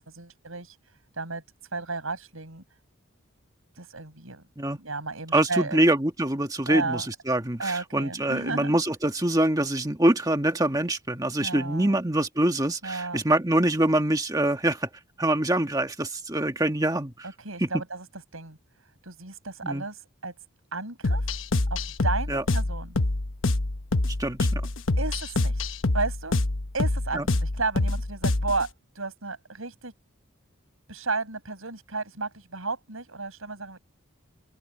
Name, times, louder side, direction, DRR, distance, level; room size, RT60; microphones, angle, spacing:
voice 1, 0.0-1.4 1.7-2.6 3.7-4.4 4.8-5.8 6.7-7.1 7.6-8.7 11.4-12.0 12.8-13.2 17.2-18.1 18.3-18.6 19.0-20.3 20.7-21.4 21.7-23.0 25.0-25.6 25.9-26.4 26.7-29.9 30.9-33.8, right 3 dB, 85° right, 6.5 m, -33 dB
voice 2, 5.3-14.9 15.2-17.3 17.6-17.8 19.6-19.8 22.3-22.4 24.2-24.6 27.1-27.2, right 1 dB, 15° right, 1.5 m, -25 dB
sound 1, 21.0-28.6, left 2 dB, 75° left, 1.1 m, -26 dB
open air
head